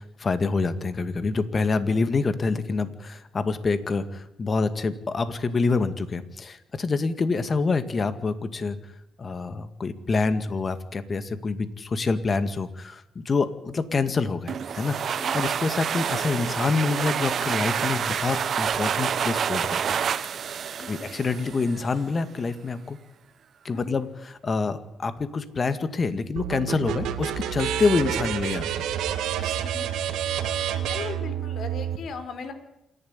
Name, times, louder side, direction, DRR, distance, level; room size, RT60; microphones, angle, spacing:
voice 1, 0.0-8.8 9.2-20.0 20.9-23.0 23.6-28.7 29.4-29.5, left 4 dB, 35° left, 12 dB, 2.0 m, -27 dB
sound 1, 14.5-22.0, right 7 dB, 55° right, 1.0 m, -28 dB
sound 2, 26.4-32.0, right 10 dB, 85° right, 2.1 m, -29 dB
voice 2, 30.8-32.5, left 5 dB, 65° left, 10 dB, 4.1 m, -38 dB
27.5 x 11.5 x 9.8 m, 0.87 s
cardioid pair, 90°, 0 cm